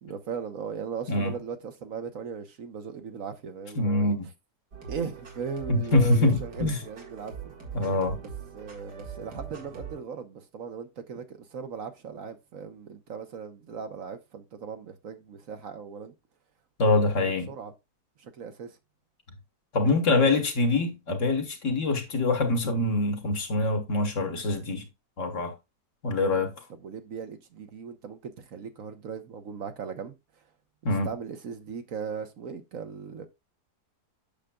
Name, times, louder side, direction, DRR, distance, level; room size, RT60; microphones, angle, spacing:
voice 1, 0.0-4.2 4.9-7.5 8.5-16.1 17.0-17.7 18.2-18.8 20.1-20.3 26.8-30.1 31.0-33.3, right 6 dB, 60° right, 1.3 m, -38 dB
voice 2, 3.8-4.3 5.7-6.8 7.7-8.2 16.8-17.5 19.7-24.8 25.2-25.5 26.0-26.5 30.8-31.1, left 2 dB, 55° left, 1.6 m, -24 dB
sound 1, 4.7-10.0, right 6 dB, 90° right, 2.4 m, -42 dB
8.7 x 6.5 x 2.3 m
omnidirectional pair, 1.7 m